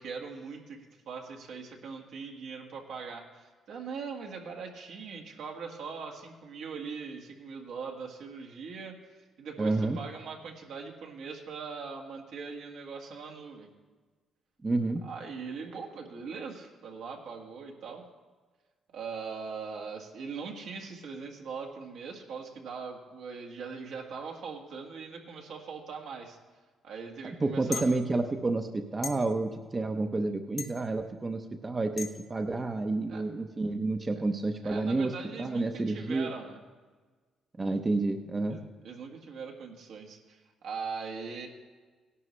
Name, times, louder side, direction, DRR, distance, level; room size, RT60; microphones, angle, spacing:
voice 1, 0.0-13.7 15.0-18.0 18.9-26.4 26.8-27.9 33.1-33.3 34.6-36.6 38.5-41.5, right 5 dB, 80° right, 1 dB, 1.7 m, -41 dB
voice 2, 9.6-10.0 14.6-15.0 27.4-35.1 35.4-36.3 37.6-38.6, right 2 dB, 25° right, 5 dB, 0.7 m, -30 dB
sound 1, 27.7-27.9 29.0-29.1 30.6-30.7 32.0-32.1, left 6 dB, 55° left, 1.4 m, -35 dB
17.0 x 11.0 x 3.2 m, 1.4 s
cardioid pair, 90°, 0 cm